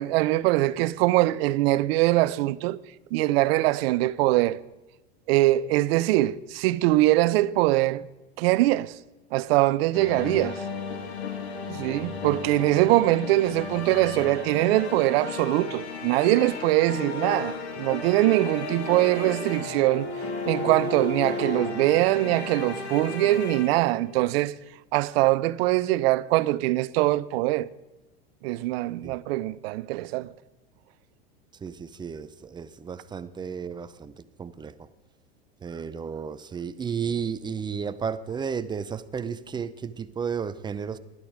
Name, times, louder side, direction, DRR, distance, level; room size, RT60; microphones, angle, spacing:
voice 1, 0.0-2.8 3.1-4.6 5.3-8.0 8.4-9.0 9.3-10.6 11.7-24.5 24.9-27.7 28.4-30.3, right 17 dB, 65° right, 0.6 m, -23 dB
sound 1, 9.9-24.1, left 4 dB, 80° left, 2.1 m, -34 dB
voice 2, 31.5-34.9 35.6-41.0, right 6 dB, 15° right, 0.5 m, -33 dB
12.0 x 11.0 x 5.0 m
hypercardioid pair, 105°, 32 cm